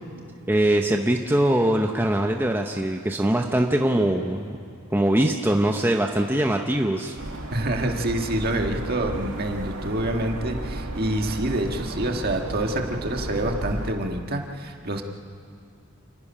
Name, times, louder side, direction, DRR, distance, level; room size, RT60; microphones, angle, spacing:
voice 1, 0.5-4.6 4.9-7.1, right 1 dB, 10° right, 3 dB, 0.7 m, -22 dB
sound 1, 7.2-13.9, right 1 dB, 85° right, 2.0 m, -33 dB
voice 2, 7.5-15.0, right 1 dB, 45° right, 3 dB, 1.7 m, -27 dB
28.5 x 11.0 x 10.0 m, 2.5 s
head